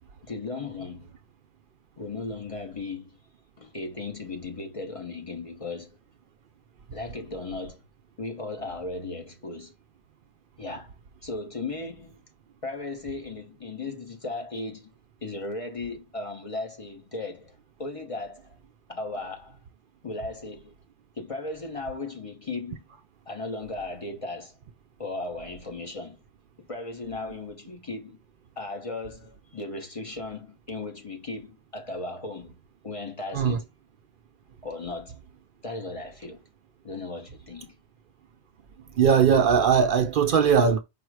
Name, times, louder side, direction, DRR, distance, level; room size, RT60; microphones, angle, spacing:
voice 1, 0.2-1.1 2.0-3.2 3.6-6.0 6.9-7.8 8.2-9.7 10.6-10.9 11.2-12.2 12.6-14.9 15.2-18.6 18.9-19.6 20.0-20.8 21.2-22.8 23.3-24.5 25.0-26.2 26.7-28.2 28.6-32.6 32.8-33.7 34.6-35.2 35.6-36.4 36.8-37.7, left 3 dB, 35° left, 0.8 m, -36 dB
voice 2, 39.0-40.8, right 7 dB, 60° right, 0.6 m, -19 dB
5.1 x 2.0 x 4.6 m
omnidirectional pair, 1.1 m